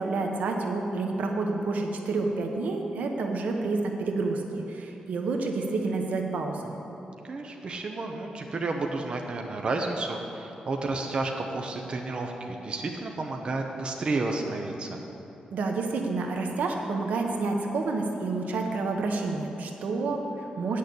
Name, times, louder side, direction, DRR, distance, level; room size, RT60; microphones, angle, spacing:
voice 1, 0.0-6.8 15.5-20.8, right 3 dB, 85° right, 2 dB, 1.1 m, -29 dB
voice 2, 7.2-15.0, right 3 dB, 40° right, 2 dB, 0.8 m, -31 dB
9.4 x 6.6 x 8.5 m, 3.0 s
wide cardioid pair, 140°, 3 cm